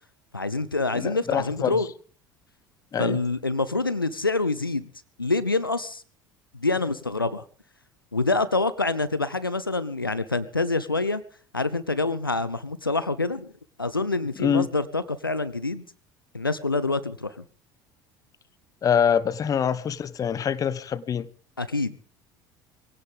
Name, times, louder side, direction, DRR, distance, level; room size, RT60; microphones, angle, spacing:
voice 1, 0.3-1.9 3.0-4.9 5.2-6.0 6.5-7.4 8.1-11.2 11.5-13.5 13.8-15.8 16.3-17.4 21.6-21.9, left 3 dB, 85° left, 0.7 m, -26 dB
voice 2, 0.9-1.8 2.9-3.2 14.4-14.7 18.8-21.3, left 7 dB, 30° left, 1.1 m, -24 dB
22.5 x 17.0 x 3.6 m
figure-of-eight pair, 65°, 11 cm